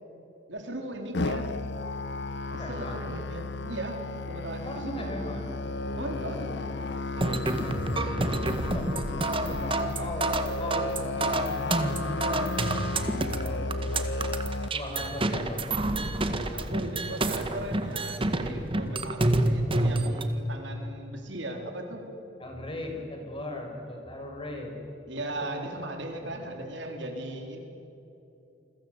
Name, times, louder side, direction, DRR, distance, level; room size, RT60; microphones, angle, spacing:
voice 1, 0.5-1.5 2.5-5.1 6.0-6.5 16.5-22.1 23.0-23.1 25.1-27.6, right 1 dB, 65° right, 3 dB, 4.1 m, -37 dB
Musical instrument, 1.1-14.7, left 2 dB, 65° left, 0.9 m, -33 dB
voice 2, 2.5-3.0 4.7-5.5 5.8-8.9 9.4-12.5 12.8-13.8 14.7-15.6 22.4-24.7 26.2-26.5, left 1 dB, 30° left, 2 dB, 5.9 m, -39 dB
sound 1, 7.2-20.2, right 2 dB, 30° right, 1.8 m, -28 dB
29.5 x 22.5 x 8.2 m, 2.9 s
head